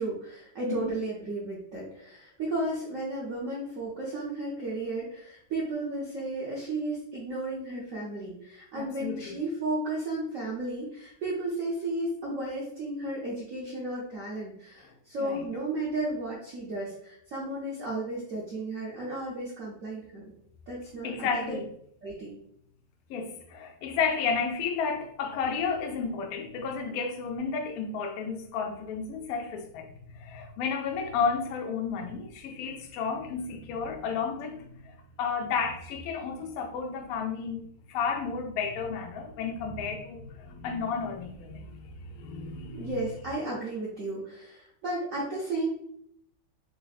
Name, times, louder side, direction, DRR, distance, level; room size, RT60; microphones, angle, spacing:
voice 1, 0.0-20.3 20.7-21.4 22.0-22.4 42.7-45.7, right 2 dB, 60° right, 0.8 m, -34 dB
voice 2, 8.8-9.4 15.2-15.5 21.0-21.7 23.1-29.9 30.1-42.9, left 5 dB, 85° left, 0.7 m, -32 dB
3.4 x 2.0 x 4.0 m
omnidirectional pair, 2.2 m